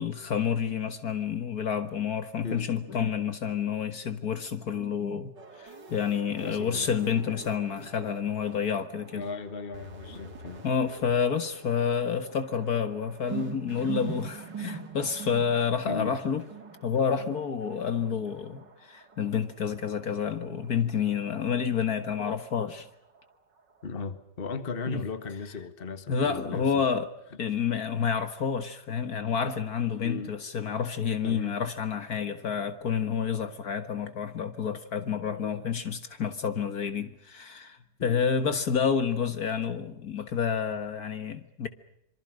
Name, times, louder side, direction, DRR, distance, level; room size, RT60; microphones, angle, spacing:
voice 1, 0.0-5.3 5.6-9.2 10.6-16.4 16.8-22.9 24.9-25.0 26.1-27.1 27.4-41.7, left 7 dB, 60° left, 1.9 m, -29 dB
sound 1, 5.4-23.9, right 6 dB, 80° right, 3.1 m, -44 dB
voice 2, 6.4-6.9 9.1-10.6 15.9-16.2 23.8-26.8 30.0-30.4 31.2-31.6 38.0-38.2, left 4 dB, 30° left, 1.7 m, -36 dB
26.5 x 24.5 x 6.4 m
omnidirectional pair, 1.9 m